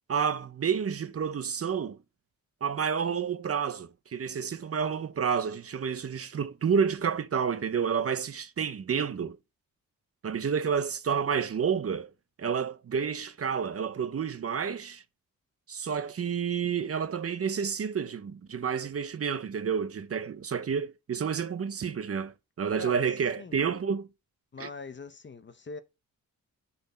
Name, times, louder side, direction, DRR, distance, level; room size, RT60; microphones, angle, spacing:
voice 1, 0.1-2.0 2.6-9.4 10.2-12.1 12.4-15.0 15.7-24.1 24.6-24.7, right 7 dB, 45° right, 0.7 m, -30 dB
voice 2, 24.5-25.8, left 4 dB, 35° left, 0.8 m, -42 dB
12.0 x 4.3 x 4.1 m
cardioid pair, 85°, 34 cm